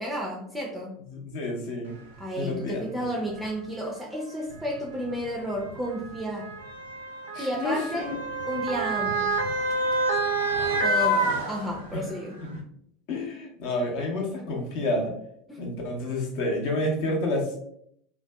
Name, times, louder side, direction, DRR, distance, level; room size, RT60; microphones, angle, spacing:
voice 1, 0.0-1.0 2.2-6.5 7.4-8.1 8.5-9.4 10.8-12.4 15.5-15.6, equal, 10° right, -2 dB, 0.4 m, -32 dB
voice 2, 1.0-2.0 2.4-2.8 7.3-8.1 11.3-11.4 11.9-12.0 12.4-12.6 13.1-15.1 15.6-17.5, left 1 dB, 55° left, 0 dB, 0.7 m, -29 dB
Motor vehicle (road) / Siren, 2.2-2.3 3.2-3.4 4.5-12.1 12.5-12.6, right 2 dB, 75° right, 0.4 m, -28 dB
2.5 x 2.2 x 2.2 m, 0.69 s
figure-of-eight pair, 75°, 0 cm